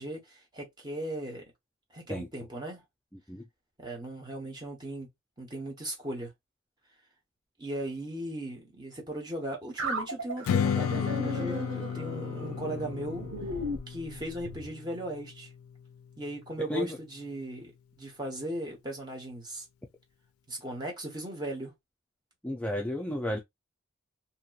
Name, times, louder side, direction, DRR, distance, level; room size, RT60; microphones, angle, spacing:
voice 1, 0.0-1.4 1.9-2.8 3.8-5.1 5.4-6.3 7.6-13.3 13.9-15.5 16.2-17.7 18.0-19.6 20.5-21.7, right 1 dB, 20° right, 1.0 m, -37 dB
sound 1, 9.8-14.7, equal, 60° right, 0.9 m, -36 dB
Strum, 10.4-15.7, left 7 dB, 85° left, 0.3 m, -33 dB
voice 2, 22.4-23.4, left 1 dB, 5° left, 0.3 m, -32 dB
2.9 x 2.8 x 2.3 m
head